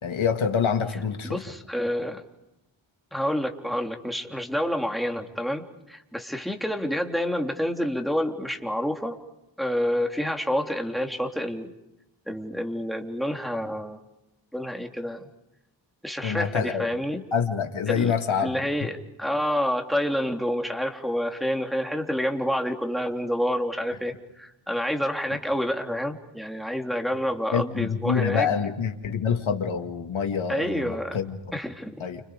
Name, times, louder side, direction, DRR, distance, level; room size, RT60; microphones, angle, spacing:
voice 1, 0.0-1.4 16.2-16.9 17.3-18.6 27.5-31.4 32.0-32.2, left 7 dB, 85° left, 2.2 m, -26 dB
voice 2, 1.2-2.2 3.1-9.2 9.6-11.7 12.3-14.0 14.5-15.2 16.0-17.2 17.9-18.1 18.4-28.5 30.5-31.2 31.5-32.1, equal, ahead, 3.4 m, -28 dB
29.5 x 27.5 x 5.2 m
wide cardioid pair, 75°, 47 cm